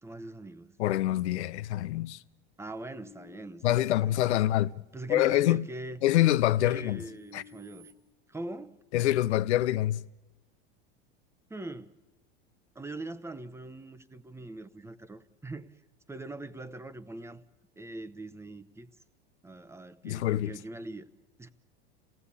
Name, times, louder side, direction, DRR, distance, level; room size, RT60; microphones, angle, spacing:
voice 1, 0.0-0.8 2.6-4.4 4.9-6.0 6.6-7.9 8.3-8.8 11.5-11.9 12.7-15.7 16.1-17.4 17.8-18.9 19.4-21.1 21.4-21.5, right 2 dB, 10° right, 0.8 m, -42 dB
voice 2, 0.8-2.2 3.6-4.7 5.1-5.6 6.0-7.0 7.3-7.4 8.9-10.0 20.0-20.5, left 14 dB, 90° left, 0.7 m, -25 dB
sound 1, 2.9-4.9 5.4-7.9, left 5 dB, 85° right, 4.8 m, -57 dB
27.0 x 17.0 x 8.5 m
supercardioid pair, 115°, 33 cm